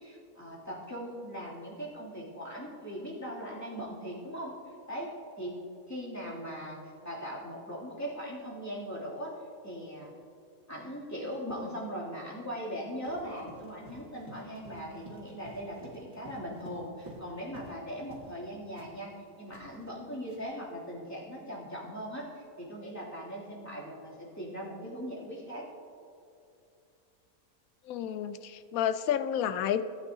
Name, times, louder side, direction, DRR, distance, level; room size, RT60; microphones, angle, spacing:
voice 1, 0.0-4.6 4.9-5.1 5.4-5.6 5.9-6.8 7.0-9.3 9.6-10.2 10.7-25.7, equal, 10° left, -7 dB, 2.7 m, -40 dB
Run, 13.0-17.8 18.1-18.4 18.8-20.6, right 1 dB, 55° right, 2.5 m, -51 dB
voice 2, 27.9-29.8, left 9 dB, 75° left, 12 dB, 1.0 m, -30 dB
19.0 x 9.6 x 2.8 m, 2.7 s
omnidirectional pair, 1.5 m